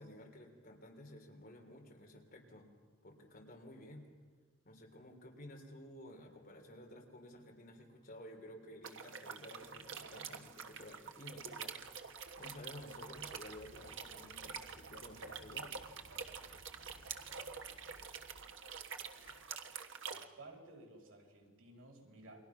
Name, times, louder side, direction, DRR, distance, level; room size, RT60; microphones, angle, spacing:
voice 1, 0.0-2.7 3.0-4.1 4.7-15.7, left 1 dB, 45° left, 2 dB, 3.6 m, -53 dB
sound 1, 8.8-20.2, right 6 dB, 65° right, 1.4 m, -47 dB
sound 2, 9.6-19.8, left 1 dB, 80° left, 2.9 m, -64 dB
voice 2, 20.0-22.4, right 2 dB, 85° right, 0 dB, 5.4 m, -56 dB
29.5 x 23.0 x 5.9 m, 1.5 s
head